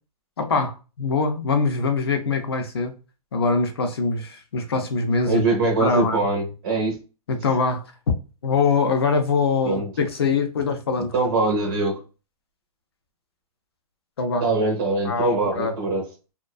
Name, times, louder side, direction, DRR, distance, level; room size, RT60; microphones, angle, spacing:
voice 1, 0.4-2.9 3.3-5.4 5.8-6.2 7.3-7.8 8.4-11.1 14.2-14.4 15.1-15.7, left 4 dB, 40° left, 0.4 m, -23 dB
voice 2, 5.3-7.0 9.6-9.9 11.0-12.0 14.4-16.1, right 3 dB, 35° right, 0.6 m, -23 dB
2.4 x 2.1 x 2.3 m
hypercardioid pair, 175°, 20 cm